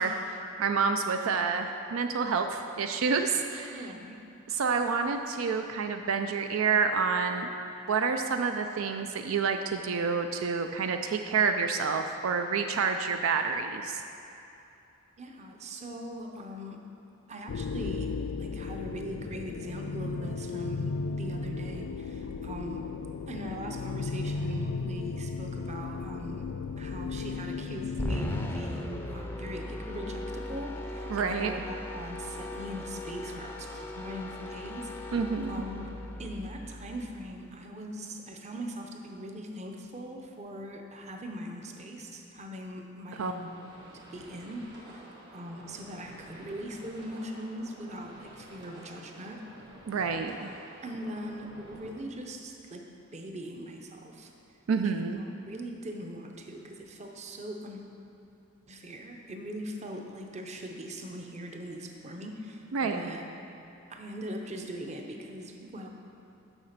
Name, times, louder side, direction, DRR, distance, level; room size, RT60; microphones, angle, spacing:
voice 1, 0.0-3.8 4.5-7.5 7.9-14.0 31.1-31.5 35.1-35.5 43.2-43.3 49.9-50.5 54.7-55.2 62.7-63.1, right 5 dB, 80° right, 6 dB, 0.4 m, -28 dB
voice 2, 3.7-4.2 15.2-16.9 17.3-22.9 23.3-35.2 35.5-35.9 36.2-43.6 44.1-49.5 50.8-54.3 54.8-57.8 58.7-63.2 63.9-65.9, equal, 35° right, 3 dB, 0.7 m, -41 dB
sound 1, 17.5-29.4, left 4 dB, 85° left, 0.4 m, -35 dB
sound 2, 28.0-37.4, left 1 dB, 10° left, 0.5 m, -38 dB
sound 3, 43.1-51.9, right 1 dB, 60° right, 1.9 m, -51 dB
7.2 x 5.8 x 6.5 m, 2.7 s
head